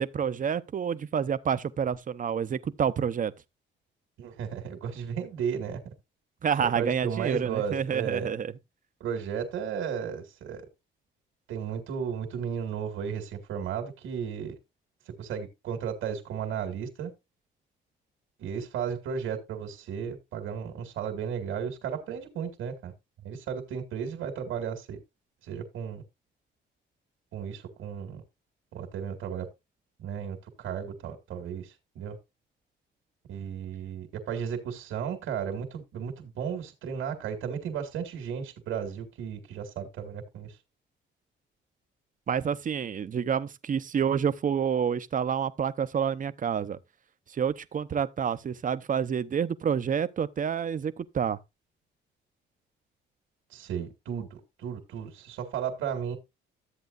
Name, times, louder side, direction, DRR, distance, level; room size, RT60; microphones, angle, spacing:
voice 1, 0.0-3.3 6.4-8.5 42.3-46.8 47.3-51.4, right 7 dB, 40° right, 0.8 m, -28 dB
voice 2, 4.2-5.8 6.8-8.3 9.0-10.6 11.5-14.6 15.2-17.1 18.4-22.9 23.2-25.0 25.5-26.0 27.3-28.2 28.7-29.5 30.0-32.2 33.3-40.5 53.5-56.2, right 7 dB, 80° right, 2.1 m, -34 dB
13.0 x 8.0 x 2.5 m
cardioid pair, 90°, 20 cm